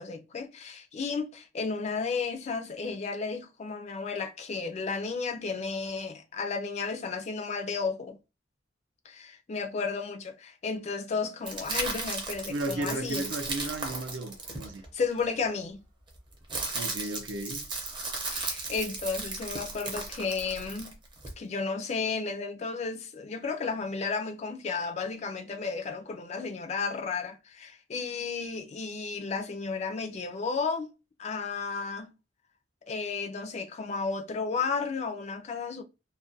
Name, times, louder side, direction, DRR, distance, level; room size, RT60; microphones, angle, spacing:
voice 1, 0.0-8.2 9.1-13.3 14.9-15.8 18.2-20.9 21.4-30.9 31.2-32.1 32.9-35.8, left 4 dB, 35° left, 0.3 m, -33 dB
sound 1, 11.4-15.2 16.1-21.3, right 3 dB, 25° right, 0.6 m, -35 dB
voice 2, 12.5-14.8 16.7-17.6, right 2 dB, 80° right, 0.5 m, -34 dB
2.3 x 2.2 x 2.6 m
head